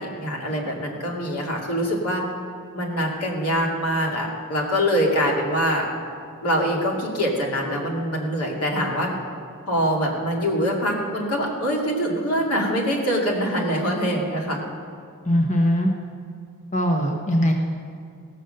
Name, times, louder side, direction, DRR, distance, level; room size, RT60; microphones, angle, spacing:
voice 1, 0.0-2.2 2.7-5.9 6.4-9.1 9.7-14.6, equal, 90° left, -1 dB, 2.5 m, -24 dB
voice 2, 15.2-15.9 16.7-17.5, equal, 35° left, 2 dB, 1.0 m, -20 dB
18.0 x 6.7 x 6.6 m, 2.4 s
head